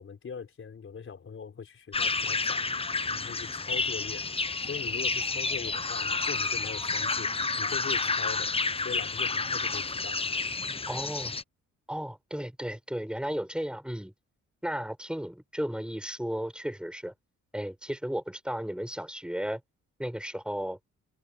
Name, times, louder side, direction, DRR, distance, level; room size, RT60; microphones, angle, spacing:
voice 1, 0.0-2.7 3.1-7.3 7.6-10.2, left 6 dB, 45° left, 5.3 m, -41 dB
sound 1, 1.9-11.4, left 4 dB, 20° left, 0.9 m, -30 dB
voice 2, 10.9-11.3 11.9-14.1 14.6-17.1 17.5-19.6 20.0-20.8, equal, 5° right, 5.9 m, -34 dB
cardioid pair, 90°, 30 cm